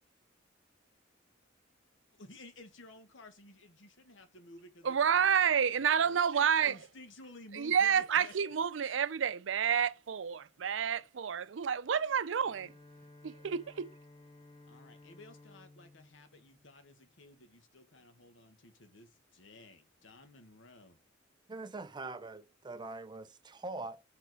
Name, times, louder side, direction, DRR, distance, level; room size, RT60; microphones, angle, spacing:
voice 1, 2.1-6.2 6.6-8.3 14.7-21.0, left 2 dB, 80° left, 1.4 m, -55 dB
voice 2, 4.8-6.8 7.5-12.7 13.2-13.9, right 7 dB, 80° right, 0.5 m, -29 dB
Bowed string instrument, 11.8-17.3, left 2 dB, 25° left, 1.2 m, -58 dB
voice 3, 21.5-24.0, right 3 dB, 25° right, 0.5 m, -43 dB
5.8 x 4.8 x 4.6 m
head